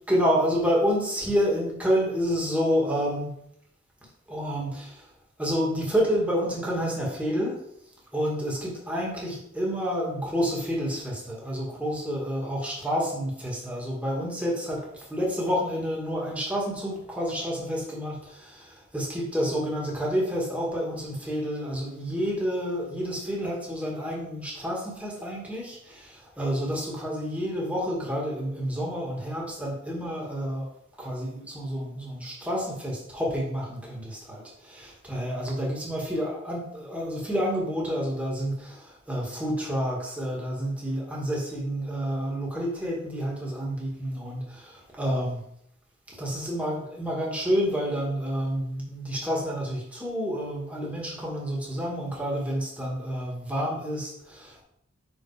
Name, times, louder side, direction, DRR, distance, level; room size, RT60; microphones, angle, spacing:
voice 1, 0.1-3.3 4.3-5.0 5.4-7.6 8.1-14.8 15.1-30.7 31.0-45.4 46.2-54.6, equal, 5° right, -4 dB, 2.1 m, -29 dB
6.0 x 5.1 x 5.0 m, 0.74 s
head